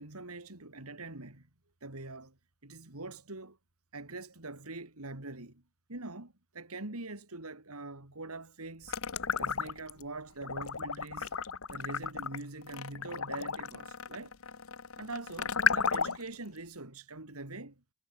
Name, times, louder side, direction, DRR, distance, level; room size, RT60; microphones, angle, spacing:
voice 1, 0.0-1.5 1.8-2.3 2.6-3.6 3.9-5.6 5.9-9.0 9.4-11.3 11.7-14.3 15.0-17.7, right 2 dB, 90° right, 3.4 m, -43 dB
sound 1, 8.9-10.0 10.4-16.3, left 6 dB, 75° left, 1.3 m, -33 dB
head